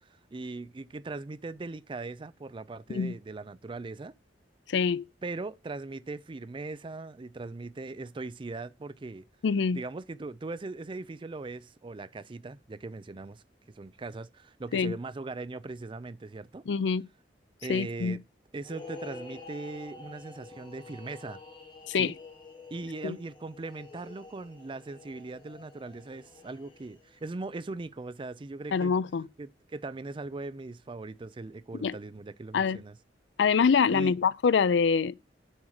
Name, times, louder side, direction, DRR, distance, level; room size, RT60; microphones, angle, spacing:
voice 1, 0.3-4.1 5.2-9.2 9.7-13.4 13.7-16.6 17.6-18.2 18.5-21.4 21.9-22.1 22.7-28.9 29.4-33.0 33.9-34.1, right 3 dB, 30° right, 0.4 m, -39 dB
voice 2, 4.7-5.0 9.4-9.8 14.7-15.0 16.7-17.0 17.7-18.2 21.9-22.1 23.0-23.2 28.7-29.3 31.8-31.9 32.5-32.8 33.4-35.1, left 5 dB, 80° left, 0.4 m, -25 dB
sound 1, 18.6-27.2, left 3 dB, 25° left, 1.9 m, -48 dB
7.2 x 6.2 x 6.5 m
head